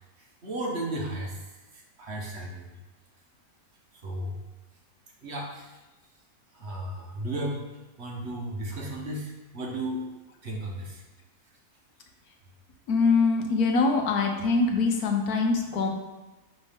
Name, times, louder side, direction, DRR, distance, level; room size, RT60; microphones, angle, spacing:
voice 1, 0.2-2.7 3.9-4.4 5.2-5.8 6.5-7.6 8.0-10.1 10.4-11.0, right 1 dB, 50° right, -2 dB, 1.3 m, -34 dB
voice 2, 12.9-15.9, left 4 dB, 80° left, 3 dB, 1.3 m, -23 dB
9.7 x 3.3 x 3.6 m, 1.1 s
omnidirectional pair, 1.6 m